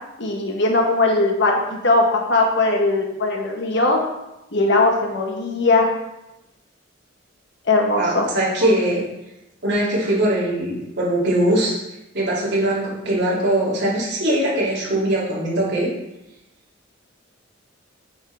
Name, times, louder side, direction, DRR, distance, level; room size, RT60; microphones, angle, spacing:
voice 1, 0.2-4.0 4.5-5.9 7.7-8.3, left 2 dB, 65° left, 2 dB, 1.3 m, -19 dB
voice 2, 8.0-9.0 9.6-11.7 12.1-15.9, right 1 dB, 60° right, -7 dB, 2.9 m, -21 dB
8.5 x 5.5 x 3.5 m, 0.93 s
head